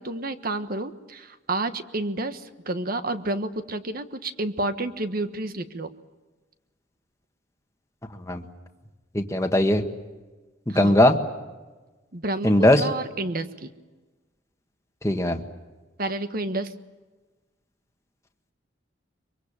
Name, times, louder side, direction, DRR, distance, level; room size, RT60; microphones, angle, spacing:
voice 1, 0.0-5.9 10.7-11.0 12.1-13.7 16.0-16.7, right 2 dB, 50° right, 10 dB, 1.4 m, -30 dB
voice 2, 9.1-9.8 10.7-11.2 12.4-12.9 15.0-15.4, left 1 dB, 15° left, 5 dB, 1.6 m, -19 dB
24.0 x 24.0 x 8.8 m, 1.2 s
head